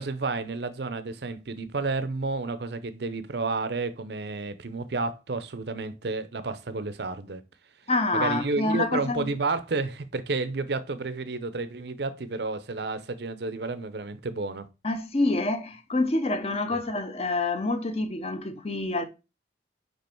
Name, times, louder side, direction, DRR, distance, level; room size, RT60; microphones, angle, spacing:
voice 1, 0.0-7.4 8.1-14.7 16.7-16.8, right 3 dB, 60° right, 0.6 m, -31 dB
voice 2, 7.9-9.3 14.8-19.0, left 2 dB, 35° left, 0.8 m, -27 dB
5.3 x 4.9 x 4.5 m
head